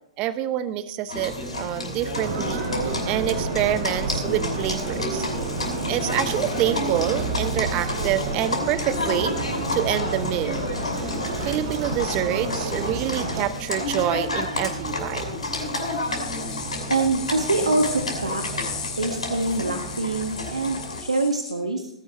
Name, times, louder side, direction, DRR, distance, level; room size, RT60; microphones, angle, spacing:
voice 1, 0.2-5.3 5.9-9.4 9.7-10.8 11.4-15.3, right 12 dB, 35° right, 13 dB, 1.0 m, -27 dB
Livestock farm animals working animals, 1.1-21.0, left 1 dB, 85° left, 6.0 m, -30 dB
sound 1, 2.1-13.4, right 3 dB, 55° right, 3.9 m, -31 dB
sound 2, 16.0-21.5, left 6 dB, 25° left, 5.1 m, -37 dB
voice 2, 16.9-18.4 19.0-21.9, right 2 dB, 85° right, 5 dB, 1.5 m, -25 dB
19.5 x 11.5 x 3.1 m, 0.80 s
figure-of-eight pair, 115°, 3 cm